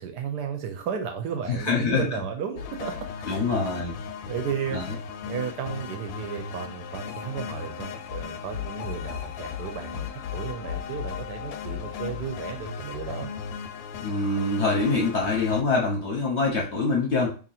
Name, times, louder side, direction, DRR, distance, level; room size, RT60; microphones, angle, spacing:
voice 1, 0.0-3.5 4.2-4.8 5.2-10.1 10.3-13.3, right 7 dB, 75° right, 5 dB, 1.1 m, -34 dB
voice 2, 1.5-2.1 3.2-4.0 4.7-4.9 14.0-17.3, left 3 dB, 50° left, -2 dB, 0.8 m, -25 dB
sound 1, 2.6-15.6, left 7 dB, 85° left, 1.3 m, -36 dB
2.9 x 2.7 x 4.1 m, 0.35 s
omnidirectional pair, 1.9 m